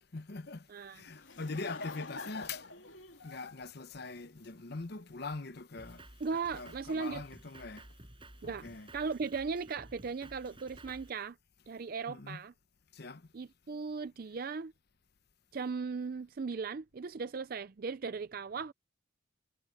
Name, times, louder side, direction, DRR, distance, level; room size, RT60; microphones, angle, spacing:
voice 1, 0.1-2.7 3.2-6.1 6.5-7.9 8.4-8.9 12.1-12.4 12.9-13.3, left 3 dB, 55° left, 0.9 m, -43 dB
voice 2, 0.7-1.0 6.2-7.2 8.4-8.7 8.9-11.4 11.7-12.5 13.3-14.7 15.5-18.7, right 5 dB, 45° right, 0.4 m, -37 dB
Laughter / Crowd, 1.0-4.8, left 3 dB, 70° left, 3.4 m, -46 dB
Drum kit, 5.8-11.1, right 1 dB, 25° right, 5.3 m, -54 dB
head